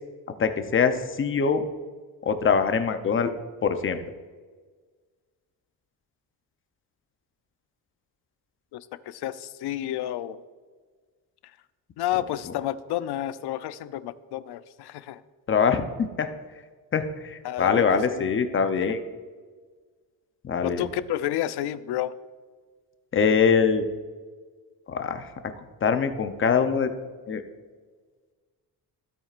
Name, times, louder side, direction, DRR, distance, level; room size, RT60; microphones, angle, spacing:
voice 1, 0.4-1.6 2.2-3.3 3.6-4.0 15.5-16.3 16.9-19.0 20.4-20.8 23.1-23.9 24.9-25.3 25.8-26.9 27.3-27.4, left 6 dB, 30° left, 8 dB, 0.6 m, -23 dB
voice 2, 8.7-10.4 12.0-15.2 17.4-18.3 18.8-18.9 20.6-22.1, left 12 dB, 70° left, 14 dB, 0.6 m, -30 dB
15.5 x 8.9 x 2.5 m, 1.5 s
cardioid pair, 165°, 41 cm